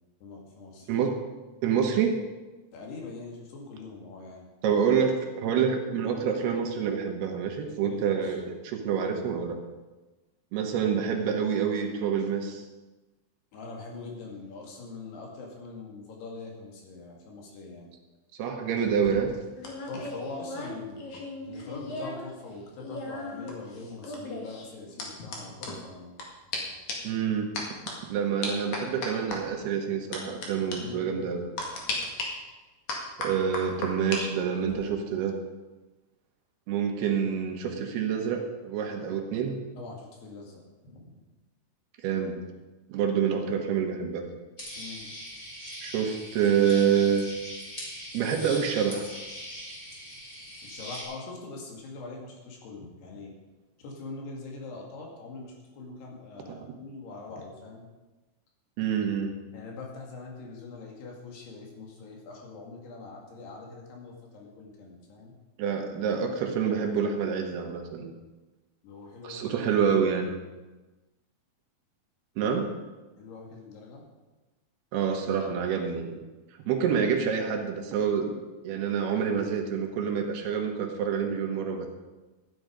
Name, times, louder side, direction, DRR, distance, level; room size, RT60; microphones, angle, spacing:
voice 1, 0.2-0.9 2.7-4.5 7.8-8.4 13.5-17.9 19.9-21.0 21.5-26.2 30.8-31.3 39.8-41.2 44.8-45.1 50.6-53.3 53.8-57.9 59.5-65.3 68.8-69.9 73.2-74.1, left 3 dB, 80° left, -1 dB, 4.3 m, -43 dB
voice 2, 1.6-2.2 4.6-9.6 10.5-12.6 18.4-19.3 27.0-27.5 28.1-31.5 33.2-35.4 36.7-39.6 42.0-42.4 42.9-44.3 45.8-47.3 48.1-49.1 56.5-56.6 58.8-59.4 65.6-68.1 69.2-70.3 72.4-72.7 74.9-76.2 76.6-81.9, right 7 dB, 80° right, 3 dB, 3.3 m, -27 dB
sound 1, 18.8-22.3 22.5-26.2 26.5-26.6 26.9-27.2 27.6-27.9 28.4-29.4 30.1-30.5 30.7-30.8 31.6-32.3 32.9-34.2 34.5-34.9, left 3 dB, 55° left, 2.9 m, -36 dB
sound 2, 44.6-51.0, equal, 20° left, 3.5 m, -41 dB
13.5 x 9.7 x 5.1 m, 1.2 s
omnidirectional pair, 4.7 m